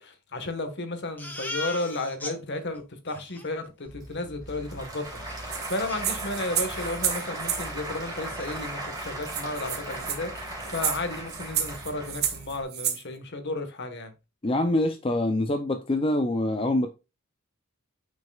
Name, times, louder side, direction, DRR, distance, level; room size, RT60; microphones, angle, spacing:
voice 1, 0.0-14.1, left 2 dB, 50° left, 1.4 m, -33 dB
Crying sobbing, 1.2-2.4 2.8-2.9 3.1-3.5 5.3-5.4 5.9-6.6 7.0-7.2 7.5-7.6 7.9-8.6, left 2 dB, 10° left, 1.2 m, -38 dB
Applause / Crowd, 3.9-12.6, right 1 dB, 15° right, 3.3 m, -37 dB
sound 1, 5.5-7.7 8.6-8.7 9.0-9.1 9.3-13.0, right 9 dB, 45° right, 1.3 m, -31 dB
voice 2, 14.4-16.9, left 1 dB, 25° left, 0.5 m, -25 dB
8.7 x 6.1 x 2.4 m
head